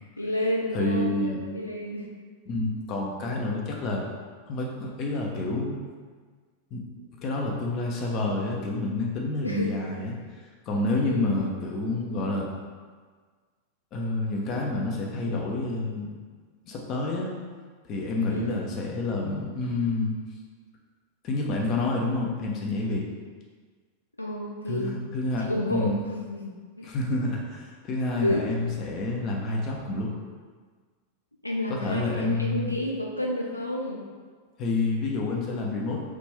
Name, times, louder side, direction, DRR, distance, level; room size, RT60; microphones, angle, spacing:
voice 1, 0.2-2.1 9.4-9.8 11.0-11.4 18.3-18.6 24.2-25.1 25.4-26.9 28.2-28.5 31.4-34.1, left 1 dB, 85° left, -2 dB, 0.3 m, -30 dB
voice 2, 0.7-1.4 2.5-4.0 4.5-5.8 6.7-6.9 7.2-10.2 10.7-12.5 13.9-16.1 16.6-17.3 17.8-20.2 21.2-23.1 24.7-26.0 26.8-30.1 31.7-32.7 34.6-36.0, left 2 dB, 35° left, -1 dB, 0.6 m, -28 dB
3.2 x 2.5 x 3.4 m, 1.5 s
figure-of-eight pair, 90°, 0 cm